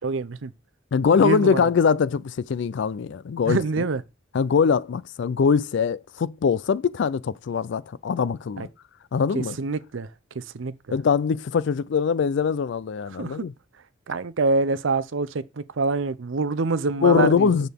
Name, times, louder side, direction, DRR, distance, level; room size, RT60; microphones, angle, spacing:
voice 1, 0.0-0.5 1.2-1.7 3.5-4.0 8.6-8.7 9.3-10.1 10.4-11.0 13.1-13.4 14.1-17.6, right 3 dB, 70° right, 0.6 m, -26 dB
voice 2, 0.9-3.6 4.3-8.7 9.1-9.6 10.9-13.5 17.0-17.7, left 6 dB, 60° left, 0.4 m, -22 dB
11.0 x 4.0 x 3.5 m
head